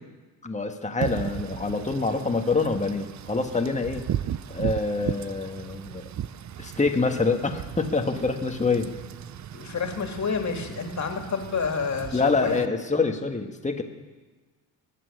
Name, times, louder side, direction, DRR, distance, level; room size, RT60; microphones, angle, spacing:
voice 1, 0.4-4.0 4.5-6.0 6.6-8.9 12.1-13.8, left 3 dB, 15° left, 4 dB, 1.7 m, -26 dB
Wind / Rain, 1.0-12.7, right 10 dB, 40° right, 0.6 m, -36 dB
voice 2, 9.5-12.6, left 5 dB, 40° left, 3 dB, 2.8 m, -29 dB
22.0 x 7.7 x 6.6 m, 1.3 s
supercardioid pair, 70°, 43 cm